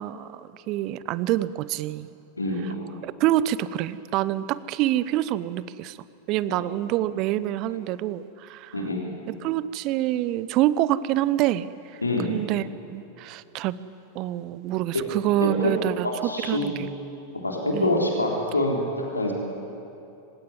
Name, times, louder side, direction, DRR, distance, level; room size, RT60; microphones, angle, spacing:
voice 1, 0.0-2.1 3.0-6.0 6.3-8.9 9.3-12.0 12.3-13.8 14.1-16.9 17.7-18.0, right 14 dB, 40° right, 17 dB, 0.8 m, -26 dB
voice 2, 2.4-2.9 6.5-6.6 8.7-9.1 12.0-12.4 15.4-15.7 16.2-17.0 17.4-19.3, left 1 dB, 80° left, -1 dB, 3.7 m, -26 dB
26.5 x 16.5 x 9.6 m, 2.8 s
figure-of-eight pair, 90°, 0 cm